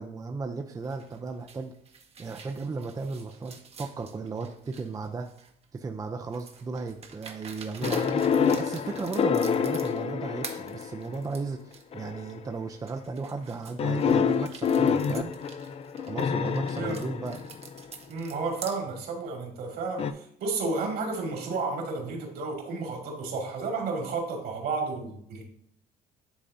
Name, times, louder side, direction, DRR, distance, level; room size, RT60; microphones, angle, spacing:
voice 1, 0.0-1.7 2.2-5.3 5.7-15.3 16.0-17.4, right 4 dB, 20° right, 4 dB, 0.5 m, -35 dB
sound 1, 0.8-5.6 6.3-10.1 10.4-11.8 12.3-12.4 12.8-18.8, right 5 dB, 40° right, 0.9 m, -46 dB
sound 2, 7.8-11.2 11.9-12.4 13.8-17.9 20.0-20.1, left 6 dB, 35° left, 0.4 m, -27 dB
voice 2, 18.1-25.4, right 3 dB, 70° right, 0 dB, 2.1 m, -32 dB
10.0 x 3.7 x 2.7 m, 0.68 s
cardioid pair, 110°, 17 cm